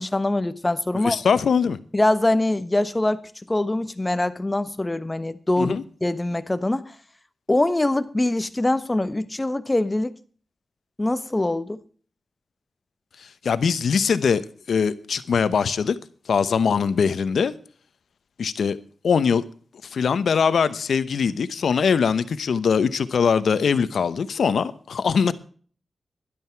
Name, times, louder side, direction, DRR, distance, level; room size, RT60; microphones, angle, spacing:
voice 1, 0.0-1.2 1.9-6.9 7.5-10.1 11.0-11.8, left 2 dB, 25° left, 1.2 m, -23 dB
voice 2, 1.0-1.8 5.6-5.8 13.4-14.4 14.7-16.0 16.3-17.5 18.4-18.8 19.0-19.4 19.9-25.3, left 6 dB, 85° left, 0.9 m, -21 dB
12.5 x 11.5 x 4.6 m
cardioid pair, 60°, 0 cm